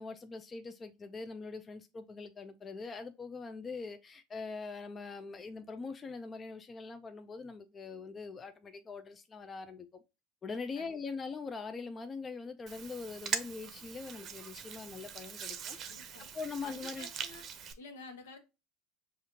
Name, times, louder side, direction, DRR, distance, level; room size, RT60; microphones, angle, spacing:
voice 1, 0.0-9.9 10.4-16.0 16.3-17.1, left 4 dB, 30° left, 0.4 m, -42 dB
Hands, 12.7-17.7, right 7 dB, 45° right, 0.6 m, -41 dB
voice 2, 15.8-16.3 16.6-17.4 17.8-18.4, left 3 dB, 80° left, 1.0 m, -50 dB
4.9 x 2.5 x 2.7 m
hypercardioid pair, 80°, 0 cm